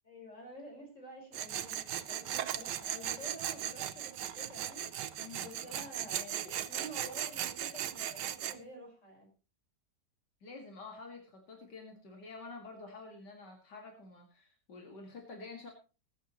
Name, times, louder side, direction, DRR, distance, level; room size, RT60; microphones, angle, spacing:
voice 1, 0.0-4.9 5.4-9.3, equal, 45° left, 1 dB, 5.4 m, -49 dB
Tools, 1.3-8.6, right 11 dB, 80° right, 1.4 m, -38 dB
voice 2, 5.2-5.8 10.4-15.7, left 3 dB, 80° left, 2 dB, 2.7 m, -49 dB
20.5 x 9.9 x 3.0 m, 0.33 s
omnidirectional pair, 1.8 m